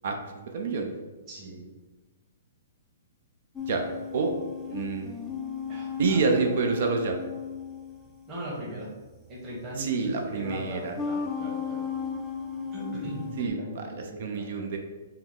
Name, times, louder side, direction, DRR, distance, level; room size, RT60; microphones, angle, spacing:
voice 1, 0.5-0.9 3.7-3.8 4.1-4.3 4.7-5.1 6.0-7.2 9.8-10.9 13.4-14.8, right 4 dB, 55° right, 3 dB, 0.6 m, -27 dB
voice 2, 1.3-1.6 5.7-6.2 8.3-8.9 9.3-11.8 12.7-14.7, right 1 dB, 20° right, -6 dB, 1.2 m, -39 dB
sound 1, 3.6-8.4 9.7-9.8 10.6-13.5, left 6 dB, 5° left, 0.4 m, -35 dB
5.7 x 2.1 x 3.6 m, 1.3 s
hypercardioid pair, 160°, 0 cm